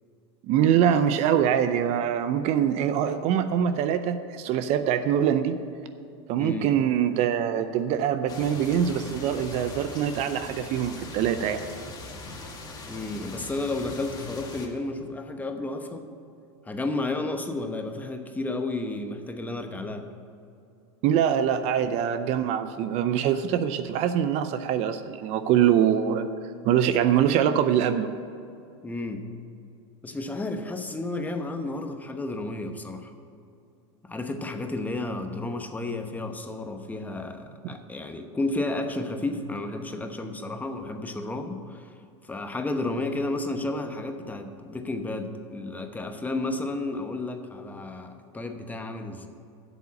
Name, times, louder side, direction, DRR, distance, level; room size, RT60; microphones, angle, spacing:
voice 1, 0.4-5.6 6.3-11.6 21.0-26.3 26.6-28.1, right 9 dB, 50° right, 11 dB, 0.6 m, -24 dB
voice 2, 6.4-6.7 12.9-16.1 16.6-20.1 28.8-29.2 30.0-33.1 34.0-41.9 42.2-49.3, left 2 dB, 10° left, 6 dB, 0.9 m, -32 dB
sound 1, 8.3-14.7, left 2 dB, 25° left, 1.9 m, -41 dB
8.1 x 7.2 x 8.5 m, 2.6 s
supercardioid pair, 115°, 15 cm